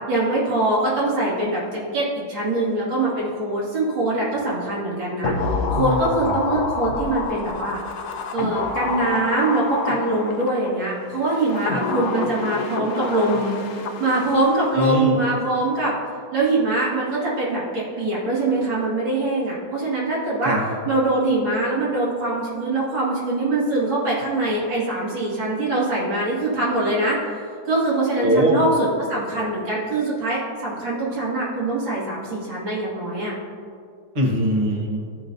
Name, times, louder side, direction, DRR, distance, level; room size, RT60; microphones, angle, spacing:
voice 1, 0.1-5.3 5.7-7.8 8.3-13.5 14.0-15.9 16.3-20.5 20.9-27.2 27.7-33.3, right 2 dB, 70° right, -7 dB, 2.9 m, -23 dB
sound 1, 5.2-10.7 11.3-14.6 14.8-14.9, left 4 dB, 70° left, 0.7 m, -27 dB
voice 2, 14.7-15.1 20.4-20.6 28.2-28.6 34.1-35.0, right 1 dB, 30° right, -2 dB, 1.0 m, -20 dB
14.5 x 5.1 x 2.6 m, 2.3 s
omnidirectional pair, 2.2 m